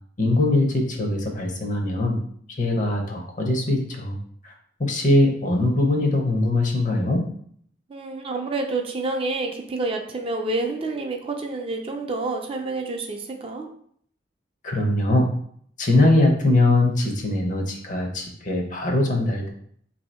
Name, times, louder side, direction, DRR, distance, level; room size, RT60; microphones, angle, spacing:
voice 1, 0.2-2.2 2.6-4.2 4.4-4.5 4.8-7.2 14.6-15.3 15.8-19.5, left 2 dB, 45° left, 2 dB, 0.6 m, -21 dB
voice 2, 7.9-13.7, right 3 dB, 30° right, 3 dB, 0.4 m, -28 dB
2.7 x 2.7 x 4.2 m, 0.63 s
head